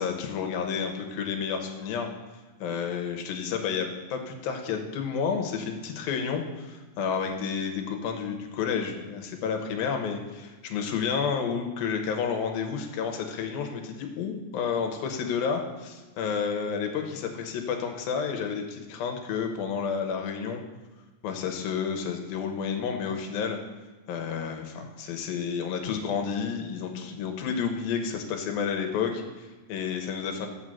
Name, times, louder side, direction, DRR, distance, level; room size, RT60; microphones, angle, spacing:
voice 1, 0.0-2.1 2.6-20.6 21.2-23.6 24.1-30.5, left 6 dB, 85° left, 3 dB, 2.7 m, -30 dB
6.3 x 5.8 x 7.2 m, 1.3 s
omnidirectional pair, 4.1 m